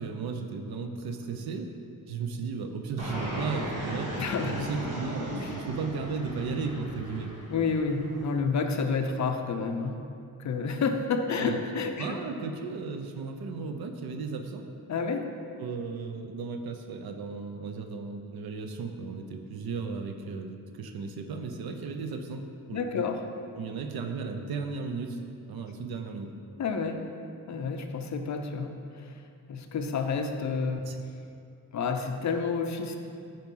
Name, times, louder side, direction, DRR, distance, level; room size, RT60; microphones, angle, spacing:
voice 1, 0.0-1.7 2.1-4.1 4.4-7.3 11.4-11.6 12.0-14.7 15.6-23.0 23.5-25.2 25.5-26.3 30.8-31.0, right 5 dB, 90° right, 6 dB, 0.8 m, -35 dB
Fixed-wing aircraft airplane, 3.0-8.4, equal, 45° right, 1.8 m, -37 dB
voice 2, 4.2-4.7 5.3-5.6 7.5-10.0 10.4-12.2 14.9-15.3 22.7-23.2 26.6-27.0 27.5-28.8 29.0-29.1 29.5-30.8 31.7-33.0, left 5 dB, 50° left, 5 dB, 0.7 m, -29 dB
9.4 x 4.6 x 5.5 m, 2.5 s
wide cardioid pair, 150°, 36 cm